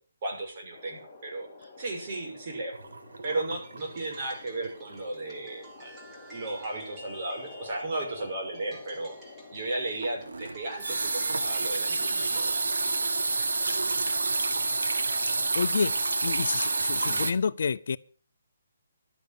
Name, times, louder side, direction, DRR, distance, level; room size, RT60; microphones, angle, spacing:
voice 1, 0.2-2.7 3.2-9.2 9.5-13.5 14.0-14.2 17.1-17.3, right 2 dB, 40° right, 1 dB, 6.0 m, -35 dB
sound 1, 0.7-17.2, left 3 dB, 15° left, 4.9 m, -50 dB
sound 2, 2.7-4.3 4.6-4.9 5.3-5.4 10.0-17.3, right 3 dB, 85° right, 1.8 m, -28 dB
sound 3, 3.6-12.7, right 1 dB, 10° right, 2.7 m, -51 dB
voice 2, 15.5-15.9 16.2-18.0, left 5 dB, 60° left, 15 dB, 0.6 m, -28 dB
12.5 x 9.6 x 7.1 m, 0.40 s
hypercardioid pair, 165°, 0 cm